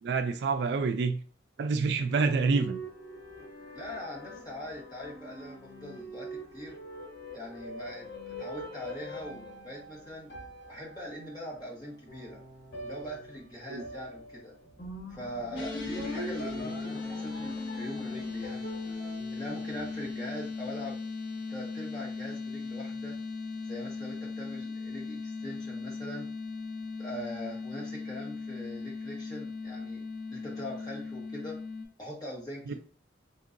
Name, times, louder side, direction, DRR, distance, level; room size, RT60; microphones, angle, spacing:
voice 1, 0.0-1.2 1.6-2.8 13.7-13.8 32.7-32.8, right 4 dB, 65° right, 0.3 m, -27 dB
sound 1, 1.9-20.4, equal, 65° left, 1.4 m, -44 dB
voice 2, 3.7-6.8 7.3-10.3 10.7-12.4 12.8-14.5 15.1-18.6 19.3-21.0 21.5-23.1 23.7-26.3 27.0-30.0 30.3-31.6 32.0-32.7, equal, 20° left, 1.2 m, -42 dB
sound 2, 15.5-31.9, left 4 dB, 85° left, 0.8 m, -38 dB
3.7 x 2.7 x 2.5 m
head